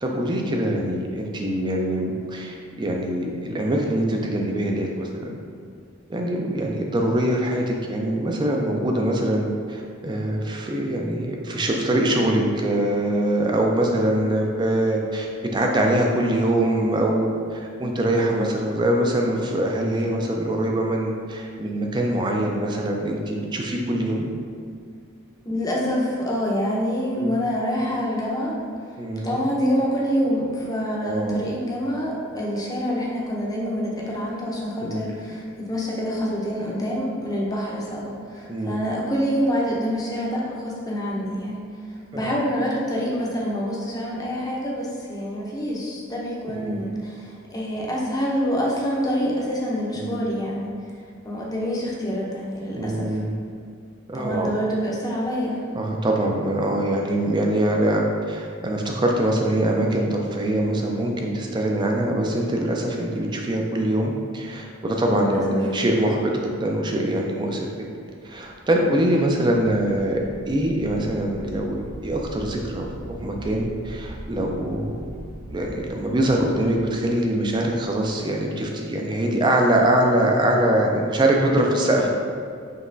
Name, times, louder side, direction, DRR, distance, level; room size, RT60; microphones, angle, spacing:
voice 1, 0.0-5.3 6.1-24.3 27.2-27.4 29.0-29.4 31.0-31.4 34.8-35.0 38.5-38.9 42.1-42.3 46.5-46.9 49.9-50.2 52.7-53.3 54.1-54.5 55.7-67.7 68.2-70.2 70.5-71.8 72.0-75.2 75.5-82.1, right 1 dB, 20° right, 1 dB, 0.4 m, -23 dB
voice 2, 25.4-28.6 29.2-41.6 41.9-50.7 51.2-53.2 54.1-55.6 65.1-65.6, equal, 20° left, -4 dB, 0.6 m, -26 dB
sound 1, 68.3-78.2, right 1 dB, 85° right, 0.6 m, -41 dB
5.2 x 2.9 x 2.6 m, 2.2 s
head